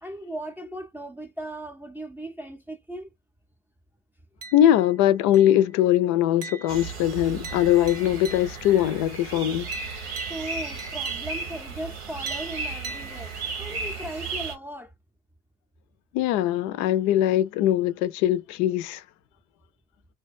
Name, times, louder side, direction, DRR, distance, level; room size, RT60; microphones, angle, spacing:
voice 1, 0.0-3.1 10.3-14.9, right 1 dB, 5° right, 0.5 m, -37 dB
sound 1, 4.4-5.0 5.3-5.8 6.4-8.8 9.7-11.6 12.3-13.7, right 4 dB, 45° right, 0.7 m, -43 dB
voice 2, 4.5-9.7 16.1-19.0, left 12 dB, 65° left, 0.5 m, -21 dB
sound 2, 6.7-14.6, right 4 dB, 85° right, 1.0 m, -34 dB
2.4 x 2.2 x 2.5 m
hypercardioid pair, 60°, 32 cm